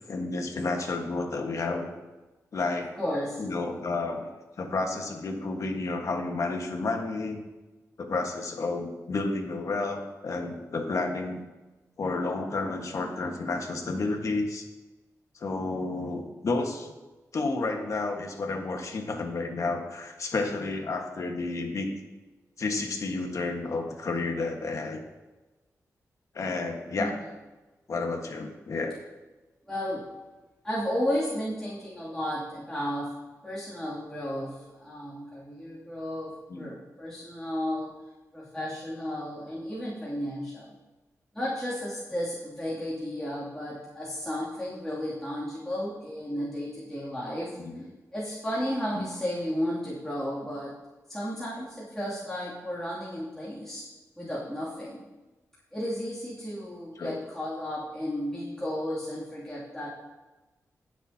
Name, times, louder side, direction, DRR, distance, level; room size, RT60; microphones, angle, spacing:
voice 1, 0.1-1.9 2.5-2.9 3.4-4.3 4.6-7.4 8.0-11.4 12.0-14.7 15.4-16.9 17.3-21.9 22.6-25.0 26.3-27.1 27.9-29.0 36.5-36.7 47.6-47.8 49.0-49.1 57.0-57.2 58.6-58.7, left 3 dB, 60° left, 3 dB, 1.5 m, -31 dB
voice 2, 3.0-3.4 27.0-27.2 29.7-30.1 30.6-33.1 33.4-37.9 38.3-40.7 41.3-47.6 48.1-50.8 51.1-53.8 54.2-55.0 55.7-59.9, equal, 10° left, -9 dB, 2.7 m, -33 dB
20.0 x 7.1 x 2.8 m, 1.1 s
wide cardioid pair, 95°, 6 cm